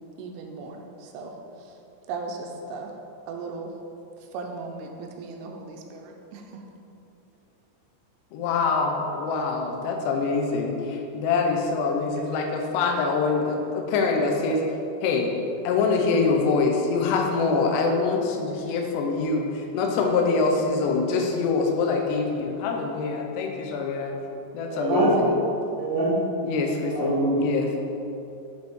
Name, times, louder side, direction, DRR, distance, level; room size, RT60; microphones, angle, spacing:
voice 1, 0.2-1.3 2.1-2.9 3.3-3.7 4.3-6.6, right 4 dB, 85° right, 3 dB, 3.2 m, -37 dB
voice 2, 8.3-14.6 15.0-15.3 15.6-24.1 24.5-25.3 26.4-27.7, left 4 dB, 85° left, 2 dB, 2.4 m, -25 dB
voice 3, 24.7-25.2 25.8-26.1 26.8-27.4, right 1 dB, 65° right, -12 dB, 1.7 m, -23 dB
7.7 x 5.3 x 4.5 m, 2.8 s
omnidirectional pair, 5.8 m